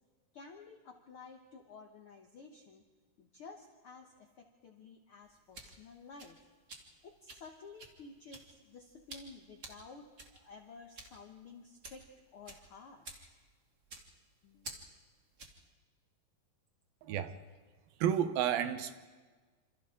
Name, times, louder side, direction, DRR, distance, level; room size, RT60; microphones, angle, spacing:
voice 1, 0.3-2.8 3.2-6.4 6.7-12.1 12.3-13.3 14.4-14.9, left 4 dB, 75° left, 4 dB, 1.2 m, -53 dB
sound 1, 5.2-15.7, right 2 dB, 30° right, 1.5 m, -52 dB
voice 2, 17.0-17.4 18.0-18.9, right 10 dB, 80° right, 10 dB, 2.8 m, -31 dB
27.5 x 27.0 x 3.8 m, 1.4 s
omnidirectional pair, 4.1 m